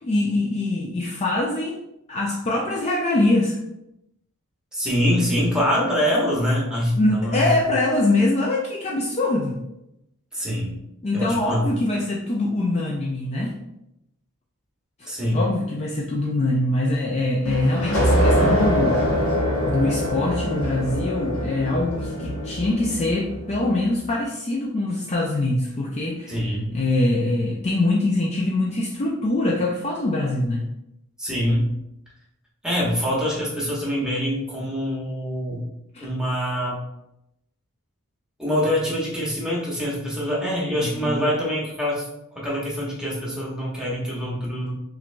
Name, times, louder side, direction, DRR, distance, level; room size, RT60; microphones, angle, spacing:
voice 1, 0.0-1.8 2.1-3.6 7.0-9.6 11.0-13.6 15.0-19.0 19.7-26.4 26.7-30.7 35.9-36.1 40.8-41.3, left 2 dB, 30° left, -2 dB, 0.4 m, -23 dB
voice 2, 4.7-7.5 10.3-10.7 11.1-11.6 15.1-15.5 26.3-26.7 31.2-31.7 32.6-35.7 36.0-36.8 38.4-42.1 42.3-44.7, equal, 5° right, -5 dB, 1.0 m, -24 dB
sound 1, 17.4-23.8, equal, 75° left, 1.1 m, -23 dB
5.8 x 2.5 x 2.2 m, 0.84 s
head